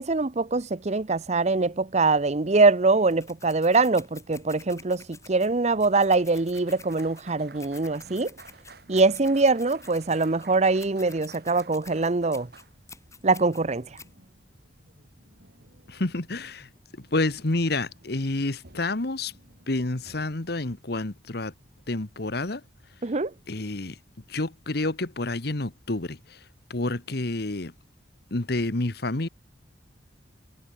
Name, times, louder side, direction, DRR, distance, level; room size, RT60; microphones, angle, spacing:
voice 1, 0.0-8.3 8.9-12.5 13.2-13.9 23.0-23.3, right 3 dB, 40° right, 0.8 m, -23 dB
sound 1, 3.1-14.1, left 4 dB, 15° left, 4.1 m, -50 dB
sound 2, 4.1-23.8, right 3 dB, 60° right, 5.7 m, -55 dB
voice 2, 15.9-16.7 17.0-19.3 19.7-21.5 21.9-22.6 23.5-24.0 24.3-26.4 26.7-27.7 28.3-29.3, left 2 dB, 65° left, 1.5 m, -29 dB
head